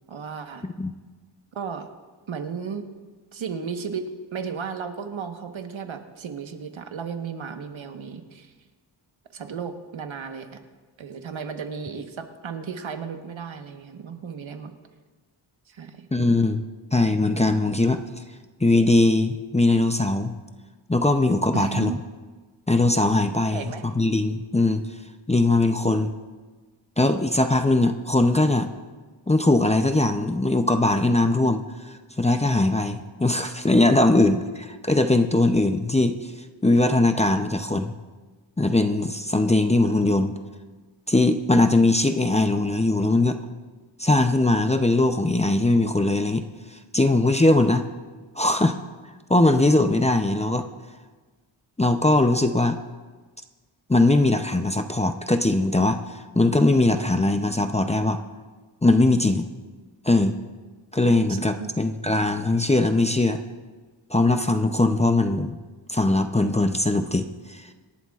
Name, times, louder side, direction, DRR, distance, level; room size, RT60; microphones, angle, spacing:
voice 1, 0.1-0.6 1.5-1.9 2.3-2.8 3.3-4.0 4.3-8.5 9.3-10.5 11.0-14.7 15.7-16.1 21.5-22.0 23.5-23.8 34.1-34.5 61.3-61.7, right 6 dB, 75° right, 6 dB, 1.3 m, -34 dB
voice 2, 16.1-16.6 16.9-18.0 18.6-20.3 20.9-21.9 22.7-24.8 25.3-26.1 27.0-28.7 29.3-36.2 36.6-37.9 38.6-40.4 41.1-43.4 44.0-46.5 46.9-47.8 48.4-48.8 49.3-50.6 51.8-52.8 53.9-56.0 56.3-58.2 58.8-59.5 60.1-60.4 60.9-63.4 64.1-65.6 65.9-67.6, left 2 dB, 15° left, 6 dB, 0.5 m, -20 dB
26.0 x 11.5 x 2.4 m, 1.3 s
wide cardioid pair, 120°, 47 cm